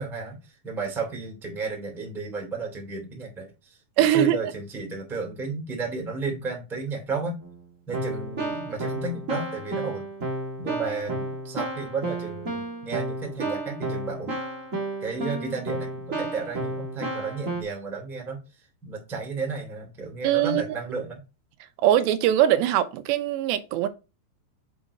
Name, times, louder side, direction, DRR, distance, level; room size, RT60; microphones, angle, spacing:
voice 1, 0.0-7.4 7.9-10.1 10.6-14.4 15.0-21.2, right 4 dB, ahead, 1.4 m, -33 dB
voice 2, 4.0-4.4 20.2-20.6 21.8-23.9, right 11 dB, 90° right, 2.9 m, -21 dB
Keyboard (musical), 7.4-7.6 7.9-17.6, right 2 dB, 35° right, 1.2 m, -32 dB
7.4 x 4.1 x 4.9 m
omnidirectional pair, 5.0 m